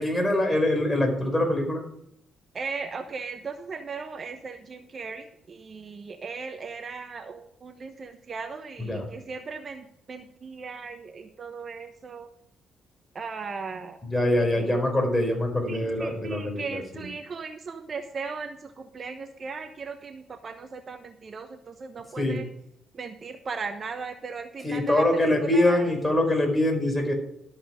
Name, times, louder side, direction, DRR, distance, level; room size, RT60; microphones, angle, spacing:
voice 1, 0.0-1.8 8.8-9.0 14.0-17.0 22.2-22.4 24.6-27.1, left 1 dB, 10° left, 2 dB, 4.9 m, -24 dB
voice 2, 2.5-12.3 13.1-14.0 14.4-14.8 15.7-22.5 22.9-25.9, right 4 dB, 40° right, 7 dB, 1.0 m, -37 dB
13.0 x 7.9 x 5.1 m, 0.75 s
cardioid pair, 90°, 0 cm